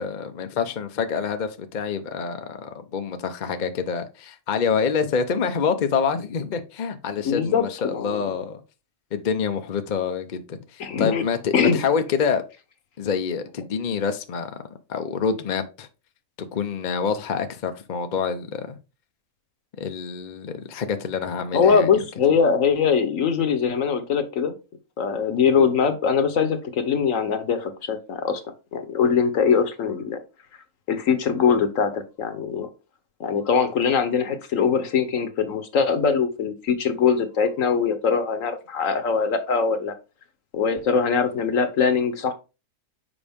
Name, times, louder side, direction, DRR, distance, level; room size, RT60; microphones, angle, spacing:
voice 1, 0.0-8.6 9.1-12.4 13.0-14.5 14.9-15.9 16.5-18.8 19.8-21.9, left 6 dB, 45° left, 0.6 m, -27 dB
voice 2, 7.2-7.6 7.9-8.2 10.8-11.2 11.5-11.8 21.5-24.5 25.0-28.4 28.7-30.2 30.9-32.7 33.2-39.9 40.5-42.3, left 6 dB, 60° left, 1.3 m, -22 dB
7.0 x 4.9 x 3.5 m
omnidirectional pair, 1.6 m